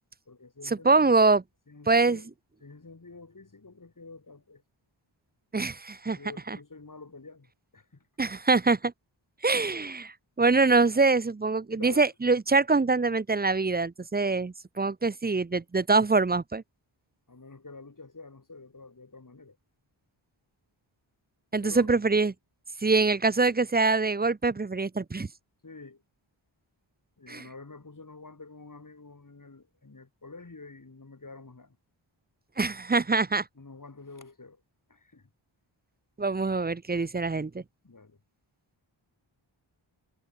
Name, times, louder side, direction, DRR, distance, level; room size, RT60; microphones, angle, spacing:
voice 1, 0.3-1.2 1.7-2.3 2.6-4.6 6.1-8.1 11.7-12.1 17.3-19.6 21.6-21.9 25.6-26.0 27.2-31.8 33.6-34.6 34.9-35.3 37.8-38.2, left 3 dB, 40° left, 2.5 m, -47 dB
voice 2, 0.8-1.4 1.9-2.2 5.5-6.2 6.5-6.6 8.2-8.9 9.4-10.1 10.4-16.6 21.5-22.3 22.8-25.3 27.3-27.4 32.6-33.4 36.2-37.6, right 3 dB, 20° right, 0.5 m, -24 dB
wide cardioid pair, 65°, 49 cm